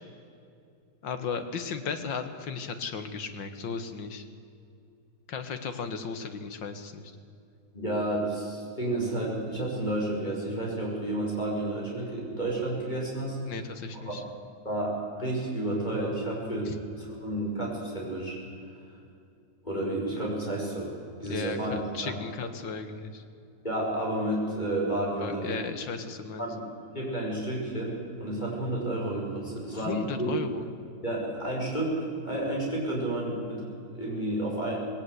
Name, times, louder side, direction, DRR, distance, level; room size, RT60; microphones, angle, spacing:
voice 1, 1.0-4.2 5.3-7.1 13.4-14.2 16.6-16.8 21.3-23.2 25.2-26.4 29.7-30.6, left 5 dB, 80° left, 9 dB, 2.1 m, -35 dB
voice 2, 7.7-13.4 14.0-14.1 14.6-18.4 19.6-20.9 21.2-22.2 23.6-25.6 26.4-30.3 31.0-34.8, right 1 dB, 25° left, -3 dB, 5.6 m, -31 dB
19.5 x 18.0 x 8.1 m, 2.5 s
omnidirectional pair, 2.0 m